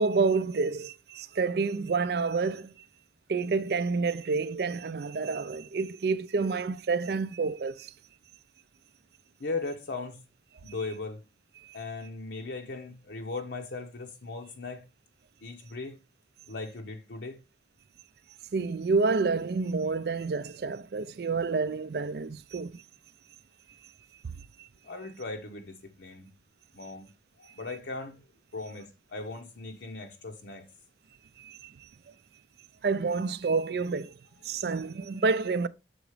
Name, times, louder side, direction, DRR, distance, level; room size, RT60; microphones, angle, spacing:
voice 1, 0.0-2.7 3.3-7.9 11.6-11.8 18.5-22.8 24.6-24.7 31.4-31.7 32.8-34.1 34.4-35.7, right 4 dB, 55° right, 0.4 m, -28 dB
voice 2, 9.4-10.2 10.6-11.2 11.7-14.9 15.4-16.0 16.5-17.4 24.8-26.3 26.7-27.1 27.4-28.2 28.5-30.7, left 3 dB, 70° left, 0.8 m, -38 dB
7.0 x 3.9 x 4.8 m
head